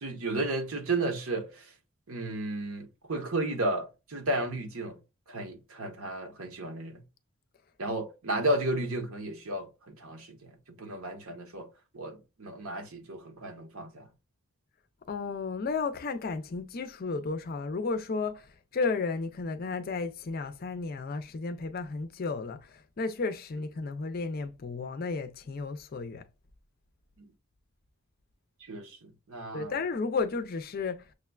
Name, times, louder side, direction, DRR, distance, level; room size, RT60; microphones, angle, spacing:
voice 1, 0.0-1.6 2.1-5.0 5.3-7.0 7.8-10.4 10.8-11.7 11.9-14.0 28.7-28.9 29.3-29.7, right 2 dB, 70° right, 1.0 m, -33 dB
voice 2, 15.1-26.2 29.5-31.0, left 4 dB, 40° left, 0.4 m, -33 dB
6.4 x 2.2 x 2.3 m
head